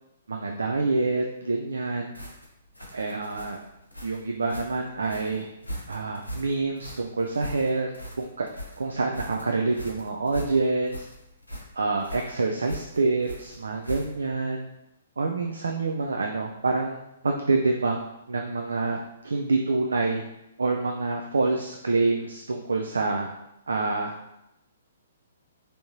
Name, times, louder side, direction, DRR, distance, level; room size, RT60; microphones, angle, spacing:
voice 1, 0.3-2.2 2.9-3.6 4.0-5.5 5.9-7.9 8.2-8.5 8.8-11.0 11.7-14.7 15.2-17.0 17.2-19.0 19.2-20.2 20.6-23.3 23.7-24.1, right 3 dB, 65° right, 2 dB, 0.3 m, -27 dB
sound 1, 2.1-14.4, equal, 85° left, 0.7 m, -40 dB
3.3 x 2.7 x 2.7 m, 0.85 s
figure-of-eight pair, 120°, 0 cm